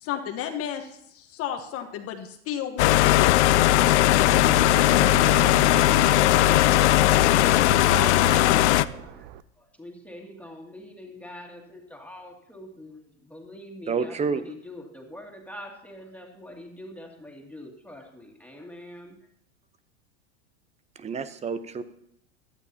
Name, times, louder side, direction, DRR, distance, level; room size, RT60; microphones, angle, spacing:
voice 1, 0.0-3.4, left 9 dB, 40° left, 5 dB, 1.3 m, -32 dB
sound 1, 2.8-8.9, left 14 dB, 70° left, 0.5 m, -18 dB
Fixed-wing aircraft airplane, 4.3-9.4, right 13 dB, 60° right, 0.7 m, -37 dB
voice 2, 7.6-9.3 9.6-19.2, left 1 dB, 5° left, 0 dB, 2.4 m, -44 dB
voice 3, 13.9-14.4 21.0-21.8, right 5 dB, 20° right, 12 dB, 0.8 m, -28 dB
17.0 x 12.0 x 2.8 m, 0.74 s
hypercardioid pair, 105°, 36 cm